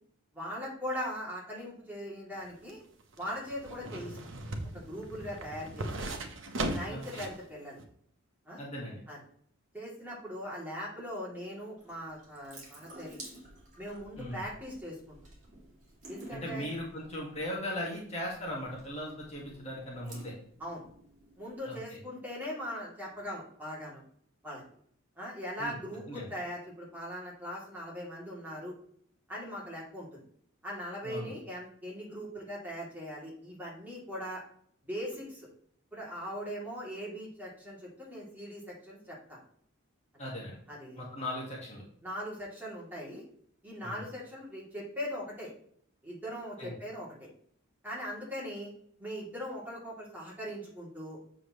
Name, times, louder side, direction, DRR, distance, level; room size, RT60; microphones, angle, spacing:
voice 1, 0.3-2.8 3.2-4.2 4.7-6.1 6.6-7.8 8.4-8.6 9.1-9.2 9.7-13.2 13.8-15.2 16.1-16.7 20.6-20.8 21.4-24.0 24.4-24.6 25.2-28.7 29.3-30.2 30.6-34.4 34.8-35.5 35.9-39.4 40.7-41.3 42.0-43.2 43.6-45.5 46.0-47.3 47.8-48.7 49.0-51.2, equal, 10° right, -5 dB, 2.9 m, -40 dB
sound 1, 2.3-7.4 7.8-7.9, right 1 dB, 65° right, 1.1 m, -38 dB
voice 2, 6.9-7.2 8.6-9.0 14.2-14.4 16.3-20.3 21.6-22.0 25.6-25.8 26.1-26.3 31.0-31.3 40.2-40.6 41.0-41.8 43.8-44.0 46.6-46.7, left 1 dB, 30° left, -3 dB, 1.9 m, -38 dB
Water tap faucet / Sink (filling or washing) / Drip, 11.8-21.6, right 2 dB, 35° right, 2.7 m, -53 dB
7.5 x 6.9 x 3.2 m, 0.63 s
head